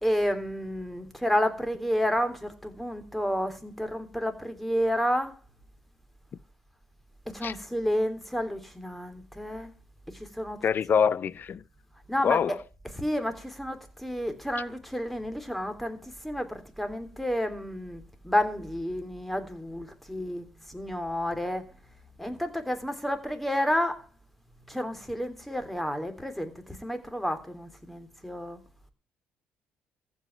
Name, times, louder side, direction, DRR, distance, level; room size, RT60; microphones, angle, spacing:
voice 1, 0.0-5.3 7.3-9.7 10.4-10.6 12.1-12.4 13.0-16.0 16.2-21.6 22.2-24.0 24.7-28.6, equal, 5° left, 3.3 m, -30 dB
voice 2, 10.6-11.6 12.2-12.6, left 7 dB, 50° left, 0.8 m, -25 dB
14.5 x 5.6 x 9.4 m
supercardioid pair, 75°, 4 cm